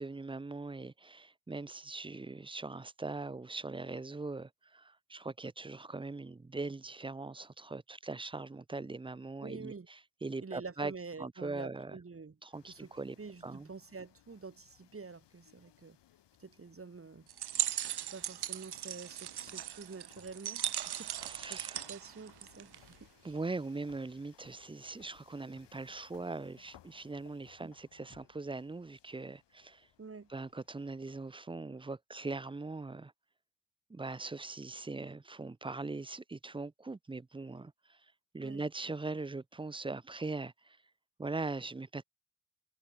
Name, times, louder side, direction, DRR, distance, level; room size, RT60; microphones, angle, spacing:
voice 1, 0.0-10.9 11.2-12.0 12.4-13.2 13.4-13.7 20.9-21.9 23.2-29.9 30.3-33.1 33.9-38.0 38.3-40.8 41.2-42.0, right 3 dB, 10° right, 0.6 m, -41 dB
voice 2, 9.4-9.9 10.4-12.4 12.7-12.9 13.2-16.0 16.4-17.3 18.1-20.6 21.0-23.4 27.6-27.7 30.0-30.3 38.4-38.6, right 4 dB, 30° right, 3.6 m, -48 dB
sound 1, 12.5-31.3, left 12 dB, 65° left, 4.5 m, -64 dB
sound 2, 17.3-22.9, right 11 dB, 60° right, 1.8 m, -38 dB
supercardioid pair, 60°, 44 cm